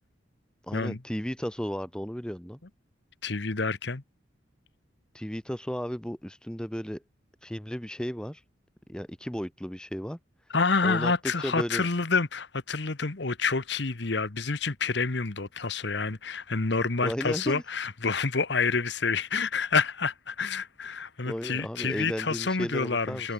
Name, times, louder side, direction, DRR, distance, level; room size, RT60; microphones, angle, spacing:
voice 1, 0.6-2.6 5.1-7.0 7.4-8.4 8.9-10.2 10.8-11.9 17.0-17.6 21.2-23.3, equal, 5° left, 1.1 m, -34 dB
voice 2, 3.2-4.0 10.5-23.3, left 4 dB, 60° left, 1.2 m, -28 dB
head